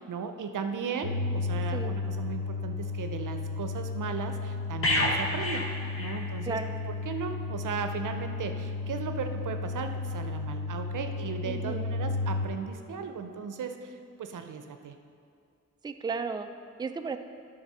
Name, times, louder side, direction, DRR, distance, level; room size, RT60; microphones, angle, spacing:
voice 1, 0.0-5.7 6.0-6.6 6.9-14.9, right 6 dB, 80° right, 7 dB, 0.6 m, -36 dB
sound 1, 1.0-12.5, left 3 dB, 60° left, 1.3 m, -33 dB
sound 2, 4.8-6.7 7.0-7.2, left 1 dB, 45° left, 1.2 m, -29 dB
voice 2, 11.5-11.9 15.8-16.5 16.8-17.2, right 4 dB, 15° right, 8 dB, 0.4 m, -34 dB
10.0 x 4.1 x 5.4 m, 2.3 s
cardioid pair, 60°, 31 cm